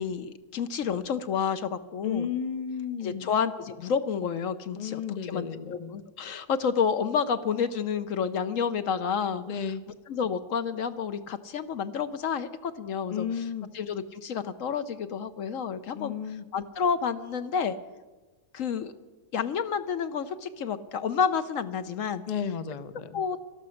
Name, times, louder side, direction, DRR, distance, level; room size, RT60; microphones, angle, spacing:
voice 1, 0.0-2.3 3.0-9.4 10.1-13.3 13.7-16.1 16.5-17.8 18.5-18.9 19.3-22.2 23.1-23.4, left 6 dB, 65° left, 11 dB, 1.0 m, -29 dB
voice 2, 2.0-3.3 4.7-5.9 9.5-9.8 13.1-13.7 15.9-16.4 22.3-23.2, left 7 dB, 40° left, 10 dB, 0.6 m, -33 dB
17.5 x 13.0 x 6.4 m, 1.3 s
omnidirectional pair, 1.7 m